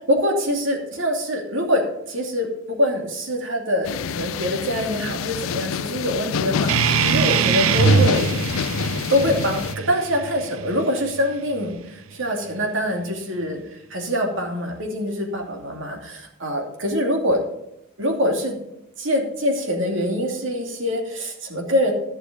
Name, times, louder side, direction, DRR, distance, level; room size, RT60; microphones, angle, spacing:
voice 1, 0.1-8.4 9.1-17.4 18.0-18.6 19.0-21.9, equal, 70° right, 1 dB, 2.7 m, -24 dB
sound 1, 3.8-9.8, left 6 dB, 90° left, 0.5 m, -27 dB
sound 2, 6.7-11.7, right 6 dB, 90° right, 0.4 m, -22 dB
14.5 x 6.8 x 5.1 m, 0.84 s
head